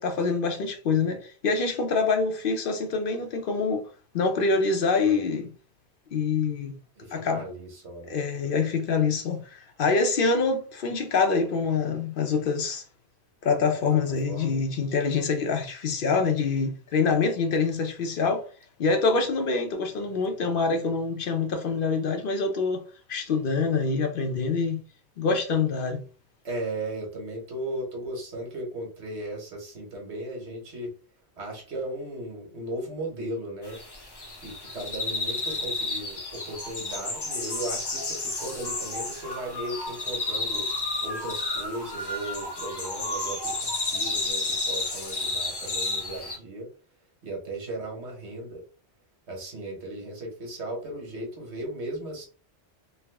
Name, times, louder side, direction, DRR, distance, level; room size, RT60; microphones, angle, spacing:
voice 1, 0.0-3.8 4.1-5.5 6.1-6.8 7.1-7.4 8.1-12.8 13.4-18.5 18.8-22.8 23.1-24.8 25.2-26.0, left 4 dB, 60° left, 0.7 m, -25 dB
voice 2, 7.0-8.2 13.9-14.6 26.4-30.9 31.4-33.8 34.4-40.7 41.0-46.7 47.2-48.6 49.3-52.2, right 1 dB, 85° right, 1.5 m, -36 dB
sound 1, 33.6-46.4, left 2 dB, 35° left, 0.4 m, -31 dB
3.4 x 2.0 x 3.3 m
omnidirectional pair, 1.1 m